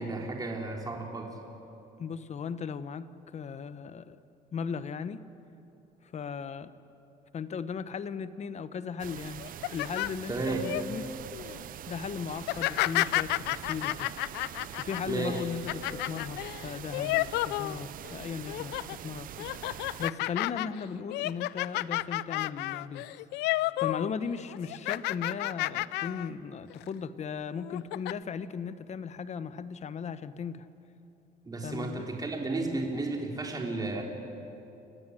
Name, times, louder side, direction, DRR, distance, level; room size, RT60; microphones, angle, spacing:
voice 1, 0.0-1.3 10.3-10.7 15.1-15.4 31.5-34.0, right 3 dB, 20° right, 0 dB, 3.6 m, -33 dB
voice 2, 2.0-4.2 4.5-5.3 6.0-6.7 7.3-9.4 9.7-11.1 11.9-14.1 14.8-19.5 20.0-23.1 23.8-30.7 31.6-32.1, left 6 dB, 40° left, 13 dB, 1.1 m, -37 dB
sound 1, 9.0-20.1, right 11 dB, 55° right, 0.7 m, -44 dB
sound 2, 9.4-10.8 11.3-11.6 12.4-18.1 18.5-19.0 19.4-24.1 24.4-26.3 26.7-26.9 27.6-28.1, left 18 dB, 85° left, 0.5 m, -31 dB
29.5 x 15.5 x 9.9 m, 2.9 s
cardioid pair, 110°, 17 cm